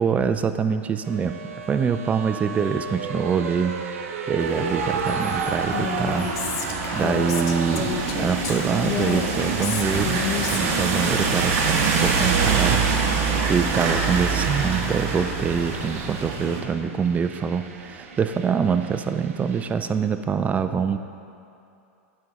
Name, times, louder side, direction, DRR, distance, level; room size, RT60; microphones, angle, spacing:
voice 1, 0.0-1.4 1.7-12.8 13.5-21.0, right 6 dB, 20° right, 9 dB, 0.3 m, -25 dB
sound 1, 1.0-19.7, right 5 dB, 70° right, 0.7 m, -34 dB
sound 2, 4.4-16.6, right 4 dB, 45° right, 1.0 m, -25 dB
Female speech woman speaking, 5.7-11.1, left 7 dB, 45° left, 0.6 m, -30 dB
8.9 x 5.3 x 3.7 m, 2.6 s
hypercardioid pair, 105°, 8 cm